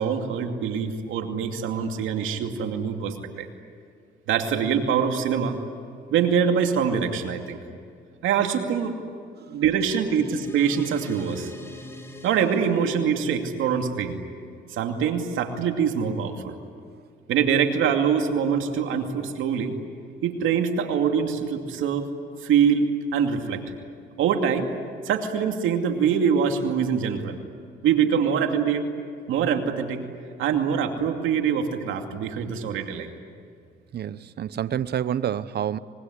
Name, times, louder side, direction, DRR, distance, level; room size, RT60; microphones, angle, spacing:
voice 1, 0.0-3.5 4.3-5.6 6.1-7.6 8.2-9.0 9.5-11.5 12.2-14.2 14.7-16.6 17.3-19.8 20.2-22.1 22.4-23.6 24.2-24.7 25.0-27.4 27.8-28.9 29.3-30.1 30.4-33.1, right 7 dB, 85° right, 4 dB, 2.6 m, -24 dB
sound 1, 10.2-15.0, left 1 dB, 10° left, 4.4 m, -43 dB
voice 2, 33.9-35.8, right 9 dB, 55° right, 15 dB, 0.9 m, -28 dB
25.0 x 22.5 x 10.0 m, 2.3 s
cardioid pair, 90°, 20 cm